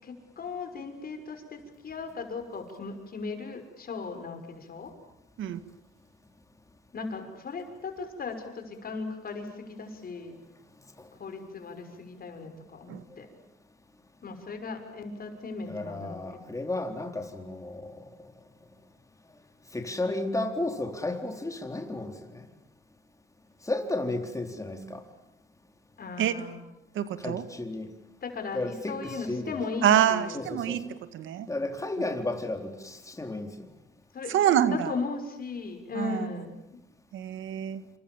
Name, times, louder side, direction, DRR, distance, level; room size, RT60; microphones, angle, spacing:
voice 1, 0.0-4.9 6.9-10.3 11.2-13.3 14.2-16.5 26.0-26.5 28.2-30.5 34.1-36.8, left 4 dB, 50° left, 6 dB, 6.3 m, -37 dB
voice 2, 15.7-18.0 19.7-22.5 23.6-25.0 27.2-27.9 28.5-29.6 30.3-30.8 31.5-33.7, left 2 dB, 15° left, 5 dB, 4.1 m, -33 dB
voice 3, 27.0-27.4 29.8-30.8 31.1-31.5 34.3-34.9 36.0-36.3 37.1-37.8, right 10 dB, 80° right, 11 dB, 1.9 m, -26 dB
29.0 x 26.5 x 7.3 m, 0.92 s
cardioid pair, 90°, 20 cm